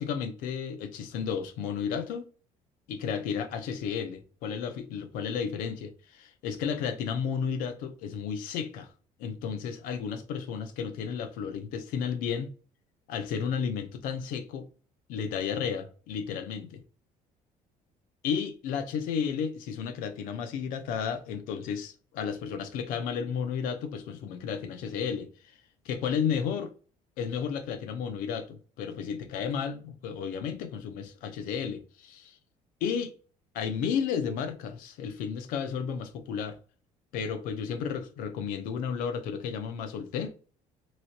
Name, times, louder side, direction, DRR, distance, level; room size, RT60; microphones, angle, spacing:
voice 1, 0.0-2.3 2.9-8.9 9.2-12.5 13.1-14.7 15.1-16.8 18.2-25.5 25.8-26.7 27.2-32.4 32.8-33.1 33.5-36.6 37.1-40.3, left 7 dB, 80° left, 0.6 m, -33 dB
3.0 x 2.9 x 2.7 m
cardioid pair, 135°, 14 cm